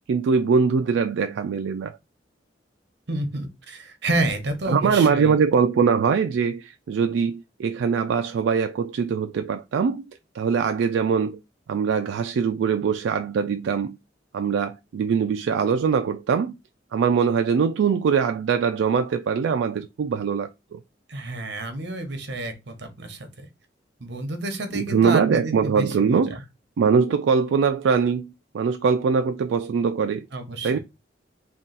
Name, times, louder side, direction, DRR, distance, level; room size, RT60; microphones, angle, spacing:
voice 1, 0.1-2.0 4.7-10.0 10.3-11.4 11.7-14.0 14.3-16.5 16.9-20.8 24.7-26.4 26.8-30.3 30.6-30.8, right 6 dB, 85° right, 0.3 m, -22 dB
voice 2, 3.1-5.4 21.1-23.5 24.0-26.4 30.3-30.8, right 2 dB, 70° right, 0.9 m, -29 dB
3.8 x 2.4 x 4.0 m
head